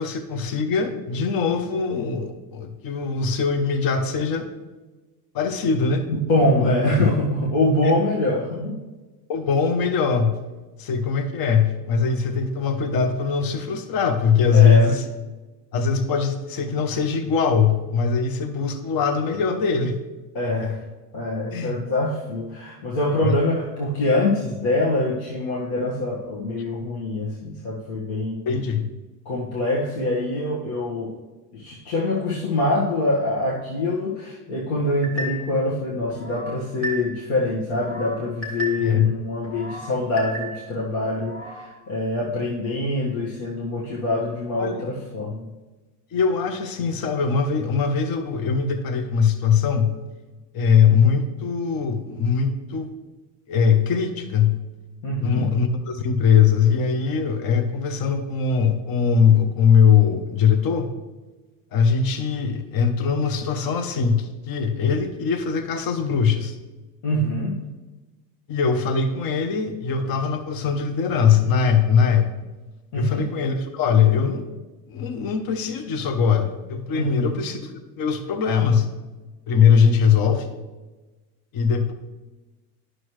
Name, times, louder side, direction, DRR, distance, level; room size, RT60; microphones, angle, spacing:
voice 1, 0.0-4.5 5.3-6.0 6.6-7.0 7.8-8.0 9.3-10.4 10.8-15.0 15.7-20.0 20.4-20.7 21.5-21.8 23.2-23.4 28.5-28.9 38.8-39.2 44.6-44.8 46.1-49.9 50.5-52.9 53.5-54.6 55.2-60.9 61.7-66.5 68.5-72.3 72.9-74.4 74.9-77.7 78.0-78.9 79.5-80.5 81.5-81.9, left 6 dB, 45° left, 8 dB, 0.9 m, -21 dB
voice 2, 6.1-8.8 14.5-14.9 20.3-20.8 21.1-28.4 29.2-31.1 31.5-45.4 55.0-55.5 67.0-67.6 72.9-73.2 76.9-77.4, left 1 dB, 65° left, -6 dB, 1.7 m, -24 dB
sound 1, 35.0-35.6 36.1-37.3 37.7-39.0 39.4-40.8 41.2-41.7, right 1 dB, 25° left, 1.9 m, -34 dB
9.5 x 6.3 x 3.2 m, 1.2 s
supercardioid pair, 95°, 48 cm